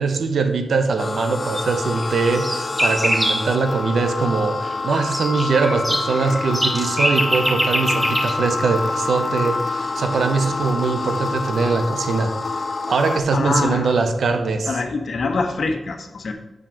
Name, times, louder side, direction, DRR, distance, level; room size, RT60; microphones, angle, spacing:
voice 1, 0.0-12.4 12.9-14.7, right 4 dB, 90° right, 7 dB, 0.8 m, -22 dB
sound 1, 1.0-13.2, left 3 dB, 45° left, 0.7 m, -27 dB
sound 2, 1.5-1.6 2.0-3.5 4.7-8.3, equal, 10° right, 1.4 m, -23 dB
voice 2, 13.3-14.0 14.7-16.3, left 3 dB, 65° left, 4 dB, 1.1 m, -24 dB
7.2 x 6.1 x 5.0 m, 1.0 s
wide cardioid pair, 130°, 0 cm